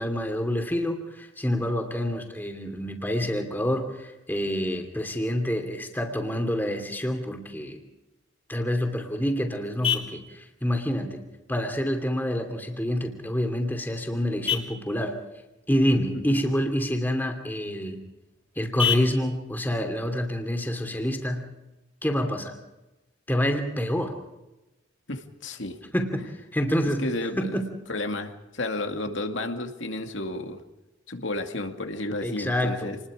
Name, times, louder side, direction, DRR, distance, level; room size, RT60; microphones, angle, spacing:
voice 1, 0.0-7.8 8.5-11.2 11.5-15.2 15.7-18.0 18.6-21.5 22.0-22.6 23.3-24.2 25.9-27.1 27.4-27.7 32.2-32.9, equal, 10° left, 5 dB, 2.7 m, -27 dB
Vehicle horn car horn honking, 8.6-21.6, left 8 dB, 30° left, 3.3 m, -36 dB
voice 2, 25.1-25.8 26.8-27.6 27.9-30.6 31.1-33.0, left 2 dB, 75° left, 5 dB, 2.3 m, -32 dB
28.5 x 21.0 x 5.0 m, 1.0 s
head